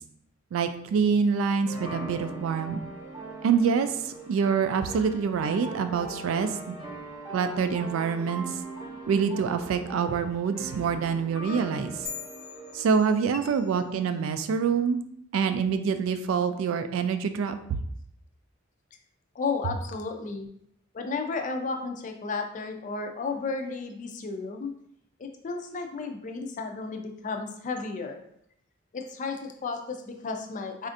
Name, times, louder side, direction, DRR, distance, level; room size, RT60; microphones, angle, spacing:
voice 1, 0.5-2.8 3.4-6.7 7.3-8.6 9.1-12.1 12.7-15.0 15.3-17.5, right 6 dB, 75° right, 9 dB, 0.3 m, -26 dB
sound 1, 1.7-12.9, right 2 dB, 20° right, 0.7 m, -41 dB
sound 2, 12.0-13.8, left 7 dB, 90° left, 0.9 m, -42 dB
voice 2, 19.4-20.5 20.9-24.7 25.2-28.2 28.9-30.9, left 4 dB, 40° left, 5 dB, 0.4 m, -33 dB
4.2 x 2.5 x 2.5 m, 0.70 s
head